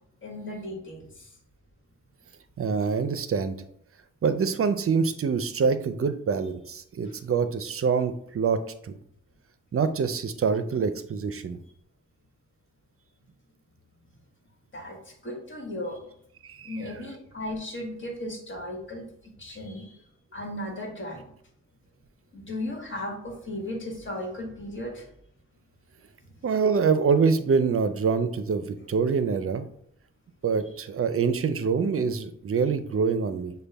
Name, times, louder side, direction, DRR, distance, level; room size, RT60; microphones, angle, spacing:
voice 1, 0.2-1.3 7.1-7.2 14.7-15.0 15.2-16.1 16.6-19.0 19.4-19.9 20.3-21.3 22.3-25.1 26.2-26.3, left 1 dB, 40° left, 1 dB, 1.5 m, -36 dB
voice 2, 2.6-3.6 4.2-8.9 9.7-11.6 16.4-16.8 26.4-29.6 30.4-33.5, right 5 dB, 50° right, 11 dB, 0.5 m, -25 dB
6.4 x 2.3 x 3.4 m, 0.69 s
cardioid pair, 65°, 30 cm